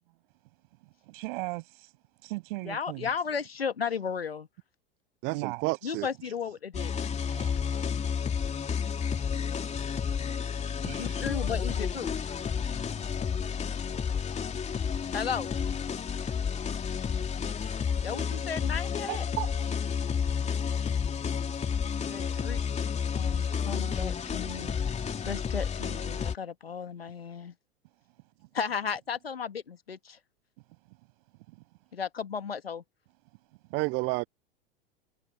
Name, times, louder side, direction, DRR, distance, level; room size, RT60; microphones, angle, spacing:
voice 1, 0.8-1.9 2.2-3.1 5.3-6.4 7.3-7.6 10.8-11.3 12.9-13.2 28.4-28.5 30.9-31.0 31.5-31.6, right 24 dB, 60° right, 7.6 m, -39 dB
voice 2, 2.7-4.5 5.8-6.9 11.0-12.2 15.1-15.5 18.0-19.3 22.1-22.6 23.1-24.7 25.2-27.5 28.5-30.2 31.9-32.8, left 6 dB, 90° left, 1.9 m, -34 dB
voice 3, 5.2-6.1 19.1-19.5 33.7-34.3, right 25 dB, 40° right, 0.5 m, -30 dB
sound 1, 6.7-26.4, left 6 dB, 25° left, 3.2 m, -31 dB
hypercardioid pair, 90°, 29 cm